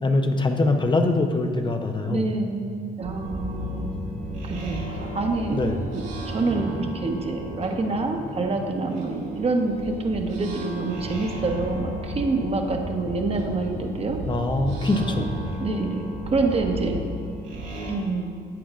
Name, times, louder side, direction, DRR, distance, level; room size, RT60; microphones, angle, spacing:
voice 1, 0.0-2.2 5.5-5.8 14.3-15.4, left 2 dB, 25° left, 5 dB, 0.7 m, -23 dB
voice 2, 2.1-3.9 4.5-5.6 5.9-14.2 14.9-15.2 15.6-17.0 17.9-18.3, right 3 dB, 35° right, 3 dB, 1.0 m, -27 dB
sound 1, 3.0-18.0, right 1 dB, 90° right, 2.2 m, -34 dB
11.5 x 8.6 x 2.5 m, 2.4 s
cardioid pair, 95°, 18 cm